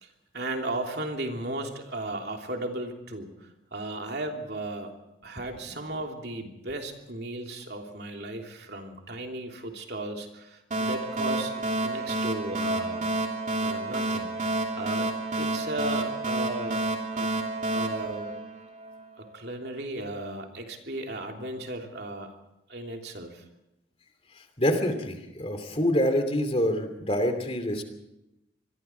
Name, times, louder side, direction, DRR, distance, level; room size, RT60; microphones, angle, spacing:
voice 1, 0.0-4.9 5.2-13.2 13.6-14.3 14.7-17.3 17.7-18.3 19.2-22.3 22.7-23.4, right 2 dB, 60° right, 2 dB, 3.1 m, -35 dB
sound 1, 10.7-19.0, right 2 dB, 40° right, 3.1 m, -30 dB
voice 2, 24.6-27.8, equal, 30° left, 7 dB, 2.7 m, -26 dB
26.5 x 21.5 x 4.6 m, 0.90 s
head